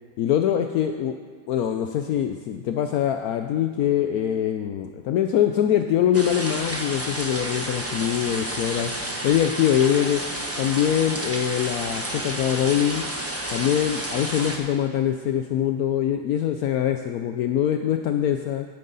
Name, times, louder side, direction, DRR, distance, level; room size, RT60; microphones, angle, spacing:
voice 1, 0.2-1.1 1.5-8.9 9.2-10.2 10.6-13.0 13.5-18.7, left 10 dB, 70° left, 6 dB, 1.0 m, -23 dB
sound 1, 6.1-14.6, right 1 dB, 10° right, 0.8 m, -31 dB
15.0 x 9.3 x 4.0 m, 1.5 s
omnidirectional pair, 1.8 m